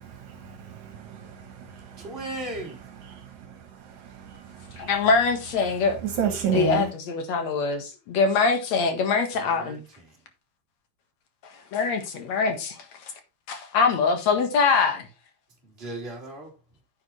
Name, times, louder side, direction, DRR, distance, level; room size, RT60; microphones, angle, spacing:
voice 1, 0.0-2.0 3.1-3.5 4.1-4.9 6.0-6.9, right 7 dB, 75° right, 2.6 m, -31 dB
voice 2, 2.0-2.8 9.3-10.1 15.6-16.5, right 1 dB, 20° right, 3.8 m, -37 dB
voice 3, 4.8-6.0 6.5-9.8 11.7-12.9 13.5-15.1, left 4 dB, 65° left, 2.8 m, -23 dB
9.7 x 9.0 x 3.3 m
omnidirectional pair, 3.4 m